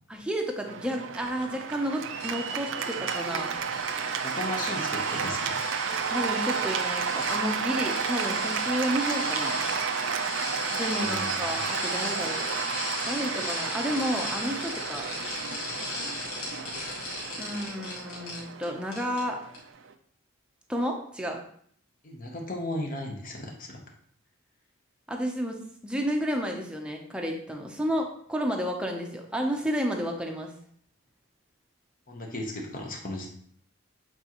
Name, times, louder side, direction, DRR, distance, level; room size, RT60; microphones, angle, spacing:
voice 1, 0.1-3.6 6.1-9.6 10.7-12.5 13.0-15.1 17.3-19.4 20.7-21.4 25.1-25.6 25.8-30.5, equal, 5° right, 1 dB, 0.7 m, -31 dB
Cheering / Applause, 0.7-19.9, right 6 dB, 60° right, 0.4 m, -32 dB
sound 1, 2.2-18.6 18.9-19.2 19.5-19.6, left 2 dB, 75° left, 2.1 m, -36 dB
voice 2, 4.2-5.6 11.0-11.4 22.0-23.8 32.1-33.3, left 1 dB, 40° left, 1 dB, 0.9 m, -35 dB
8.0 x 4.2 x 3.0 m, 0.63 s
head